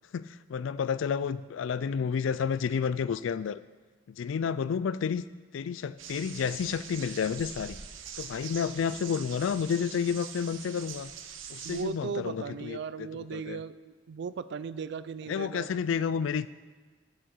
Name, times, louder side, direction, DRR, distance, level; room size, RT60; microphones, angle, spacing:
voice 1, 0.1-3.6 4.1-5.2 5.5-7.8 8.2-11.1 11.5-13.6 15.3-16.5, left 6 dB, 80° left, 16 dB, 0.3 m, -30 dB
sound 1, 6.0-11.8, right 7 dB, 90° right, 0.8 m, -43 dB
voice 2, 11.6-13.8 14.1-15.7, right 6 dB, 65° right, 15 dB, 0.4 m, -37 dB
7.4 x 6.8 x 6.6 m, 1.4 s
head